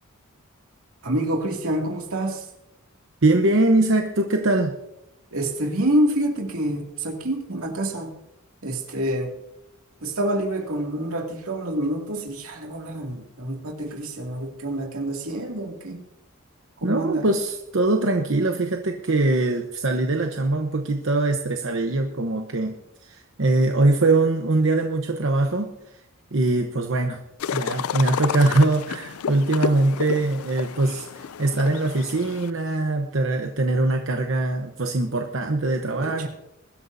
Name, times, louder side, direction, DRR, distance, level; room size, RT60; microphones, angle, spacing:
voice 1, 1.0-2.5 5.3-8.1 8.6-9.3 10.0-16.0 16.8-17.3 36.0-36.3, right 1 dB, 80° right, 2 dB, 2.4 m, -27 dB
voice 2, 3.2-4.7 16.8-22.8 23.0-25.7 26.3-27.2 27.5-36.3, right 2 dB, 60° right, 3 dB, 1.0 m, -22 dB
sound 1, 27.4-32.5, left 7 dB, 85° left, 0.4 m, -30 dB
22.0 x 12.5 x 2.7 m, 0.88 s
head